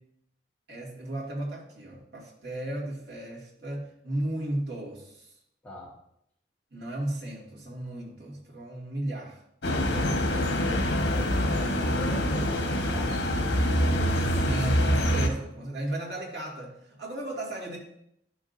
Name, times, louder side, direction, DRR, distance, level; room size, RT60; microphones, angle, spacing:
voice 1, 0.7-5.3 6.7-9.4 14.4-17.8, right 1 dB, 75° right, -4 dB, 2.3 m, -34 dB
voice 2, 5.6-5.9 9.9-10.4 11.0-14.0, equal, 10° left, -5 dB, 1.6 m, -42 dB
sound 1, 9.6-15.3, equal, 85° left, 1.2 m, -25 dB
11.0 x 6.2 x 2.7 m, 0.75 s
head